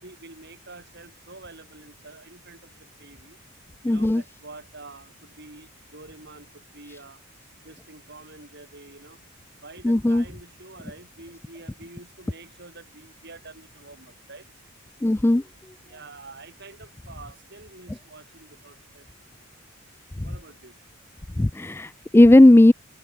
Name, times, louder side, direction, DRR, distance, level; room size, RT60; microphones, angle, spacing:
voice 1, 0.0-3.4 3.8-7.2 7.6-9.2 9.6-14.5 15.9-19.4 20.2-20.8, right 3 dB, 50° right, 4.1 m, -47 dB
voice 2, 3.8-4.2 9.8-10.2 15.0-15.4 20.2-20.4 21.4-22.7, left 1 dB, 10° left, 0.3 m, -16 dB
head